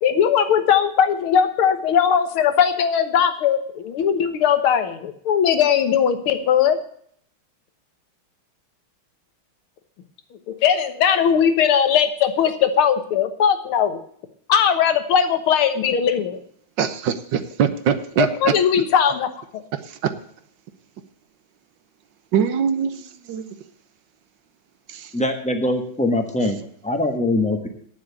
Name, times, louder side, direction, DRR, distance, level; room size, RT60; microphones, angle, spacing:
voice 1, 0.0-6.8 10.6-14.0 14.5-16.4 18.2-19.6, left 8 dB, 90° left, 9 dB, 2.0 m, -19 dB
voice 2, 16.8-18.5 19.9-20.0 22.3-23.5 24.9-25.0, right 7 dB, 65° right, 11 dB, 1.4 m, -22 dB
voice 3, 25.1-27.7, left 1 dB, 5° left, 5 dB, 1.0 m, -23 dB
9.4 x 7.5 x 8.2 m, 0.63 s
omnidirectional pair, 2.3 m